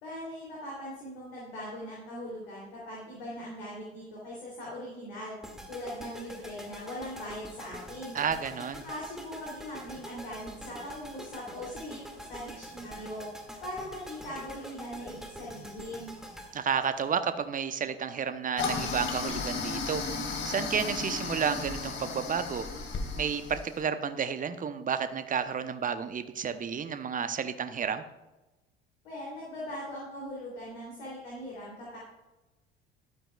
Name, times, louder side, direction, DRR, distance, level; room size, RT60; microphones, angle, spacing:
voice 1, 0.0-5.4 5.7-8.2 8.8-13.3 13.6-16.1 29.0-32.0, equal, 65° left, -5 dB, 3.2 m, -40 dB
sound 1, 5.4-17.6, equal, ahead, 2.2 m, -45 dB
voice 2, 8.1-8.8 16.5-20.0 20.4-22.6 23.2-28.0, right 7 dB, 25° right, 11 dB, 0.8 m, -31 dB
Toilet flush, 18.6-23.8, left 4 dB, 40° left, 2.4 m, -34 dB
14.5 x 12.0 x 2.4 m, 1.1 s
figure-of-eight pair, 60°, 30 cm